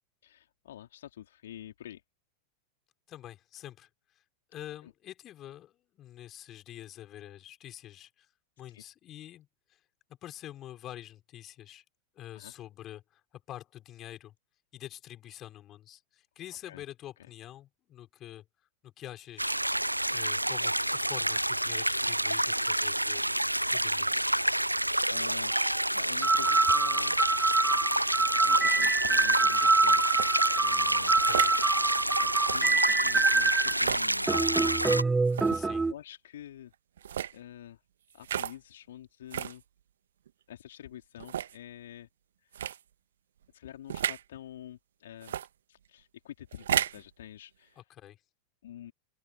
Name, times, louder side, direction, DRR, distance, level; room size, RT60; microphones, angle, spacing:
voice 1, 0.2-2.0 4.8-4.9 8.7-8.8 12.3-12.5 16.6-16.8 25.1-25.6 25.9-27.2 28.4-31.2 32.2-34.7 35.7-36.7 37.3-37.8 38.1-39.6 40.5-42.1 42.4-42.6 43.5-45.3 45.7-47.8 48.6-48.9, left 11 dB, 60° left, 2.9 m, -47 dB
voice 2, 3.1-3.9 4.5-8.3 8.6-9.8 10.2-11.8 12.1-14.3 14.7-19.6 20.1-23.2 23.7-24.3 31.2-31.5 35.5-35.8 47.8-48.2, left 12 dB, 30° left, 5.2 m, -46 dB
sound 1, 19.4-35.0, right 1 dB, 85° right, 0.3 m, -28 dB
sound 2, 25.5-25.7 26.2-33.8 34.3-35.9, right 3 dB, 10° right, 0.6 m, -26 dB
sound 3, 30.1-30.3 31.2-31.6 32.4-32.6 33.7-34.1 35.3-35.6 37.0-37.3 38.2-38.5 39.3-39.6 40.3-40.4 41.2-41.5 42.5-42.8 43.9-44.2 45.2-45.5 46.5-47.0, right 10 dB, 65° right, 1.5 m, -33 dB
open air
figure-of-eight pair, 90°, 0 cm